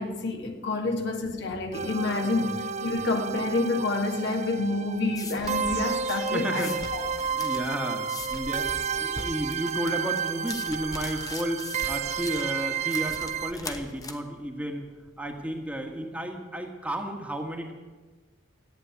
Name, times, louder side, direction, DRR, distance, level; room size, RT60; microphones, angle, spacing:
voice 1, 0.0-7.1, left 2 dB, 55° left, 1.7 m, -28 dB
sound 1, 1.7-13.5, right 6 dB, 35° right, 0.5 m, -31 dB
voice 2, 2.2-2.6 2.9-3.0 6.3-6.7 7.3-14.9 15.2-17.7, right 1 dB, 5° right, 1.6 m, -33 dB
sound 2, 4.6-16.0, left 3 dB, 20° left, 1.0 m, -42 dB
14.0 x 9.3 x 9.4 m
head